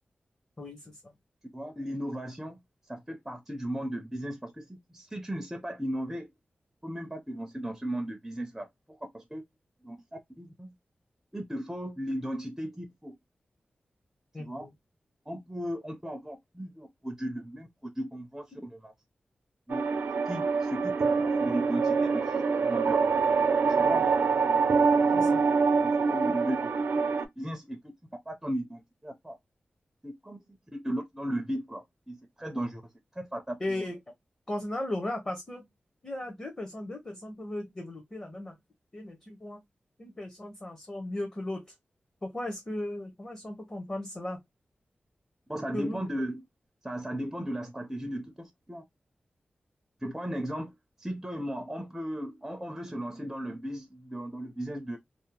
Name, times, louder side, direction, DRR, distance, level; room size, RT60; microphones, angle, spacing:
voice 1, 0.6-1.0 14.3-14.7 25.1-25.4 33.6-34.0 34.5-35.7 36.0-38.5 38.9-39.6 40.0-41.6 42.2-44.4 45.7-46.0, left 1 dB, 25° left, 0.7 m, -36 dB
voice 2, 1.5-2.6 2.9-6.3 6.8-9.4 9.8-10.7 11.3-13.2 14.4-14.7 15.3-17.7 18.0-18.9 19.7-19.9 20.3-23.0 23.7-24.1 24.7-25.3 25.8-26.9 27.4-27.8 28.3-29.4 30.0-30.4 30.7-32.8 33.1-33.5 45.5-46.4 46.8-48.8 50.0-50.7 51.0-55.0, equal, 10° right, 0.4 m, -36 dB
sound 1, 19.7-27.2, right 5 dB, 75° right, 0.4 m, -25 dB
2.7 x 2.0 x 2.7 m
wide cardioid pair, 130°, 3 cm